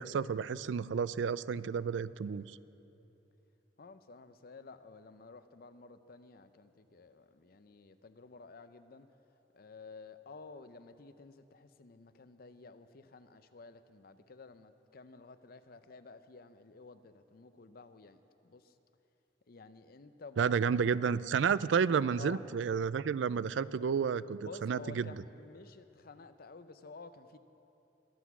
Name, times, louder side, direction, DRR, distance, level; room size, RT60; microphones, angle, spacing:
voice 1, 0.0-2.6 20.4-25.1, right 6 dB, 85° right, 18 dB, 0.4 m, -31 dB
voice 2, 3.8-9.1 9.5-18.8 19.5-20.8 22.2-22.4 24.1-27.4, left 3 dB, 55° left, 11 dB, 0.6 m, -52 dB
22.0 x 8.2 x 6.0 m, 2.9 s
head